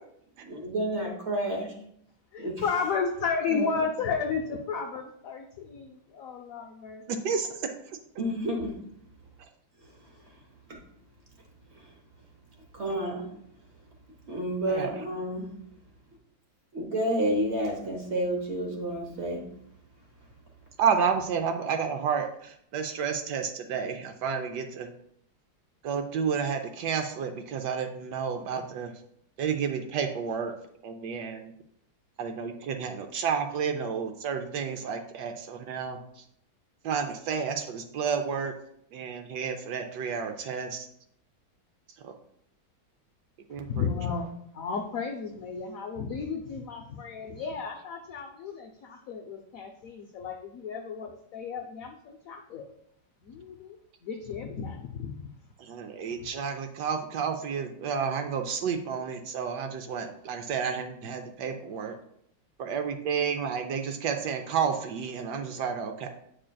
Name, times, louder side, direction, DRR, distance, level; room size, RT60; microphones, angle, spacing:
voice 1, 0.4-1.7 2.4-2.6 8.2-8.7 10.7-10.8 11.7-11.9 12.7-13.4 14.3-15.5 16.7-19.5, right 1 dB, 50° right, 2 dB, 0.9 m, -30 dB
voice 2, 2.3-7.1 43.7-44.3 44.5-52.7 53.2-53.8 54.0-55.3 56.2-56.3, left 5 dB, 80° left, 3 dB, 0.7 m, -33 dB
voice 3, 20.8-24.9 25.8-28.9 29.4-30.5 30.8-31.5 32.2-36.0 36.8-38.5 38.9-40.9 42.0-42.1 43.5-43.8 55.6-61.9 62.6-66.1, right 6 dB, 70° right, 6 dB, 1.1 m, -31 dB
8.5 x 5.0 x 2.3 m, 0.71 s
omnidirectional pair, 2.1 m